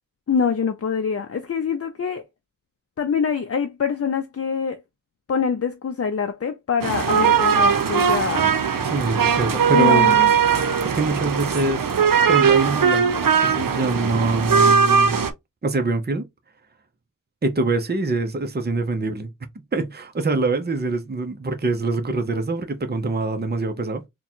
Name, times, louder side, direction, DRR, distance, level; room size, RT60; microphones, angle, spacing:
voice 1, 0.3-2.2 3.0-4.8 5.3-8.5 9.7-10.3, left 6 dB, 45° left, 0.5 m, -24 dB
sound 1, 6.8-15.3, right 6 dB, 80° right, 0.7 m, -19 dB
voice 2, 8.8-10.2 10.5-11.9 12.3-13.1 13.4-15.2 15.6-16.3 17.4-19.3 19.7-24.0, right 3 dB, 30° right, 0.7 m, -24 dB
3.7 x 2.3 x 4.3 m
wide cardioid pair, 70°, 33 cm